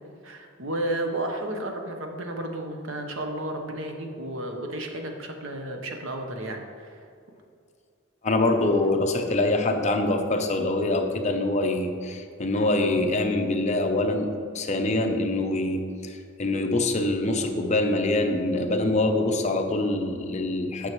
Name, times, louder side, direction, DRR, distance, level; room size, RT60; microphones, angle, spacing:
voice 1, 0.2-7.0, right 1 dB, 70° right, 3 dB, 0.9 m, -32 dB
voice 2, 8.2-20.9, left 2 dB, 35° left, 4 dB, 0.7 m, -25 dB
9.2 x 6.2 x 3.1 m, 2.3 s
head